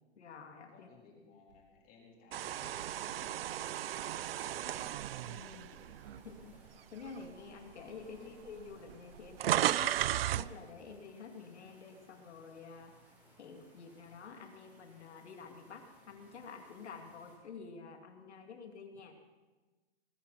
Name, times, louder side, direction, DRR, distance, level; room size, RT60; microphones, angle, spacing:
voice 1, 0.2-0.9 5.2-5.7 6.2-6.5 6.9-10.0 10.4-12.9 13.4-19.1, left 5 dB, 75° left, 4 dB, 2.3 m, -49 dB
voice 2, 0.7-4.9 5.7-6.1 8.1-8.5, left 4 dB, 25° left, -1 dB, 3.5 m, -58 dB
sound 1, 1.5-1.6 2.1-4.9 6.1-10.0 11.0-11.1, right 3 dB, 75° right, 4.2 m, -66 dB
sound 2, 2.3-6.6 7.1-7.3 8.2-8.3 8.5-10.5, right 12 dB, 60° right, 0.5 m, -35 dB
sound 3, 3.5-17.4, equal, 5° right, 4.6 m, -64 dB
20.5 x 14.5 x 4.1 m, 1.3 s
hypercardioid pair, 140°, 34 cm